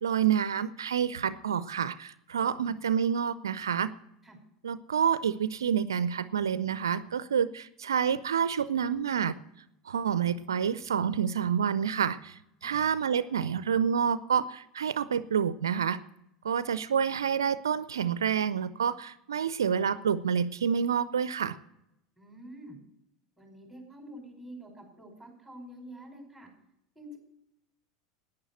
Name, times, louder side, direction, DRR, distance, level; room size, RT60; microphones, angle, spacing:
voice 1, 0.0-3.9 4.6-9.4 9.9-16.0 16.4-21.6, right 7 dB, 75° right, 16 dB, 0.4 m, -28 dB
voice 2, 2.4-2.7 4.2-4.4 12.6-12.8 22.2-22.8 23.4-26.5 27.0-27.2, right 1 dB, ahead, 2 dB, 5.3 m, -47 dB
11.0 x 9.7 x 7.9 m, 0.81 s
figure-of-eight pair, 80°, 2 cm